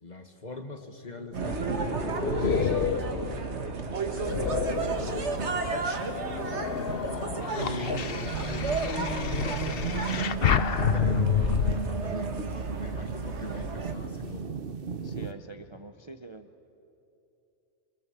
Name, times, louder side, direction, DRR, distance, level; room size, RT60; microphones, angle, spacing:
voice 1, 0.0-3.4 4.1-6.8 7.5-10.4 10.9-12.5 12.7-14.5, left 3 dB, 35° left, 6 dB, 1.7 m, -42 dB
sound 1, 1.3-5.6 6.1-11.7, left 7 dB, 55° left, 1.0 m, -29 dB
sound 2, 1.3-13.9, right 4 dB, 70° right, 1.8 m, -32 dB
sound 3, 4.3-15.3, right 5 dB, 50° right, 1.2 m, -43 dB
voice 2, 15.0-16.5, right 3 dB, 30° right, 7 dB, 0.7 m, -45 dB
27.5 x 24.0 x 8.1 m, 2.9 s
omnidirectional pair, 1.2 m